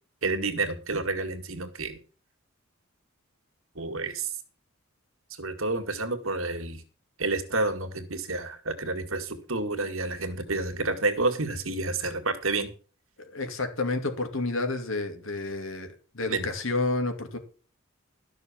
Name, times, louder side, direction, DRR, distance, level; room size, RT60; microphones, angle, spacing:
voice 1, 0.2-2.0 3.8-4.3 5.4-6.8 7.2-12.7 16.3-16.5, right 3 dB, 75° right, 7 dB, 2.0 m, -29 dB
voice 2, 13.2-17.4, left 2 dB, 70° left, 6 dB, 2.6 m, -30 dB
12.5 x 6.5 x 7.2 m, 0.39 s
head